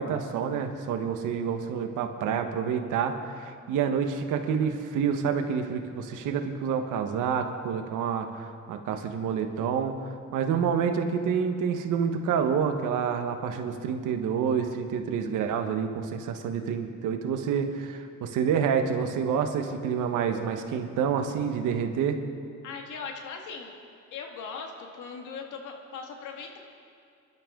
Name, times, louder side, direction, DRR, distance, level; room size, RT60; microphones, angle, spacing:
voice 1, 0.0-9.9 10.3-22.2, right 7 dB, 90° right, 6 dB, 1.3 m, -28 dB
voice 2, 22.6-23.7 24.1-26.6, left 5 dB, 85° left, 2 dB, 2.0 m, -39 dB
25.0 x 12.0 x 3.8 m, 2.3 s
cardioid pair, 90°, 30 cm